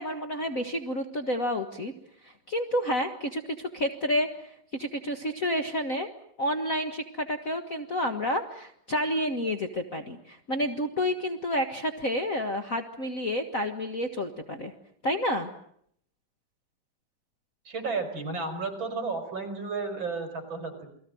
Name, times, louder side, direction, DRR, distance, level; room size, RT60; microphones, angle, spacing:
voice 1, 0.0-1.9 2.2-6.1 6.4-14.7 15.0-15.5, equal, 80° left, 6 dB, 0.7 m, -30 dB
voice 2, 17.7-20.9, right 4 dB, 30° right, 7 dB, 5.4 m, -33 dB
29.0 x 21.5 x 7.8 m, 0.68 s
omnidirectional pair, 4.1 m